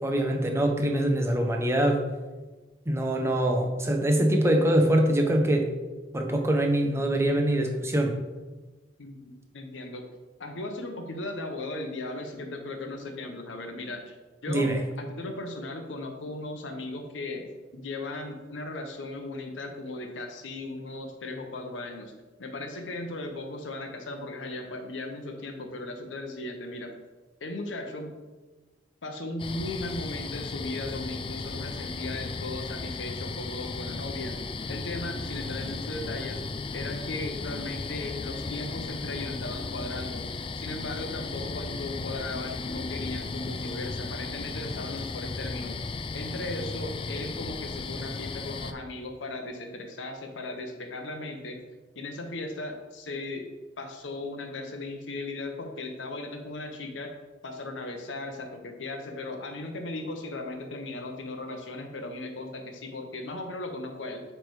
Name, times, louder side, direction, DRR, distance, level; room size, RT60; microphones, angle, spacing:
voice 1, 0.0-2.0 2.9-5.7 6.1-8.2 14.5-14.8, right 1 dB, 15° right, 2 dB, 0.8 m, -24 dB
voice 2, 9.0-10.1 10.4-14.2 14.4-14.7 15.0-17.5 17.7-22.1 22.4-26.9 27.4-28.1 29.0-34.4 34.7-36.4 36.7-40.2 40.5-45.8 46.1-51.6 52.0-53.5 53.8-57.1 57.4-64.2, left 2 dB, 90° left, 3 dB, 0.8 m, -37 dB
sound 1, 29.4-48.7, left 3 dB, 30° left, 0.3 m, -35 dB
8.3 x 3.4 x 4.8 m, 1.2 s
head